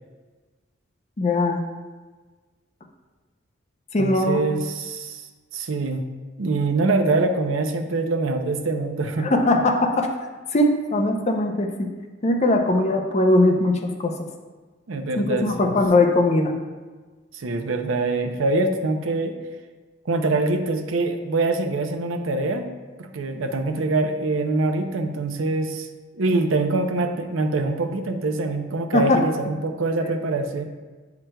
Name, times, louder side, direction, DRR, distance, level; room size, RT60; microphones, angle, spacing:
voice 1, 1.2-1.6 3.9-4.4 9.2-10.1 10.5-11.9 12.2-14.1 15.2-16.5 28.9-29.2, left 2 dB, 35° left, 4 dB, 0.5 m, -20 dB
voice 2, 4.0-5.2 5.5-6.0 6.4-9.3 14.9-15.8 17.3-19.3 20.1-22.7 23.0-25.9 26.1-30.6, right 2 dB, 80° right, 5 dB, 0.5 m, -24 dB
7.6 x 5.9 x 2.2 m, 1.3 s
head